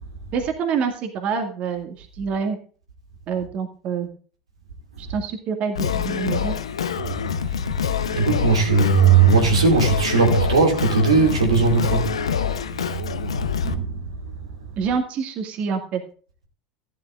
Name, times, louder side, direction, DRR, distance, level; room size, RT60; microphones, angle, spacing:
voice 1, 0.3-2.6 3.3-4.1 5.0-6.5 14.8-16.0, right 6 dB, 45° right, 2.1 m, -26 dB
Singing, 5.7-13.7, left 8 dB, 85° left, 0.8 m, -26 dB
voice 2, 7.2-7.6 8.1-12.1 12.5-12.7 13.6-13.9, right 5 dB, 90° right, 2.5 m, -18 dB
14.5 x 11.5 x 2.5 m
hypercardioid pair, 80°, 3 cm